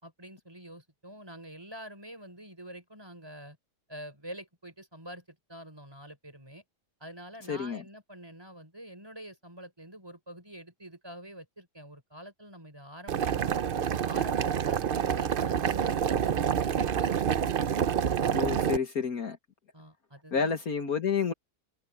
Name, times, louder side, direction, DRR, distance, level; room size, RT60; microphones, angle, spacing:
voice 1, 0.0-3.6 3.9-6.6 7.0-13.6 14.0-17.5 19.7-20.6, equal, 15° right, 5.0 m, -47 dB
voice 2, 7.5-7.8 18.3-19.4 20.3-21.3, left 6 dB, 60° left, 1.9 m, -29 dB
Boiling, 13.1-18.8, right 8 dB, 75° right, 0.5 m, -27 dB
omnidirectional pair, 1.8 m